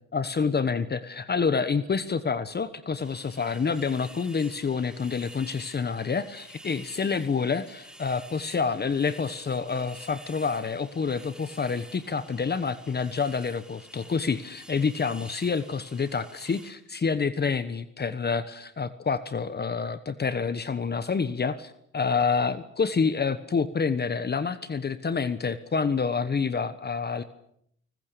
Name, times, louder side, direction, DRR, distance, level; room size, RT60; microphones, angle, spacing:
voice 1, 0.1-27.2, left 5 dB, 35° left, 13 dB, 1.2 m, -28 dB
sound 1, 3.0-16.7, right 1 dB, 5° right, 3.3 m, -49 dB
29.5 x 20.0 x 6.9 m, 0.70 s
cardioid pair, 90°, 30 cm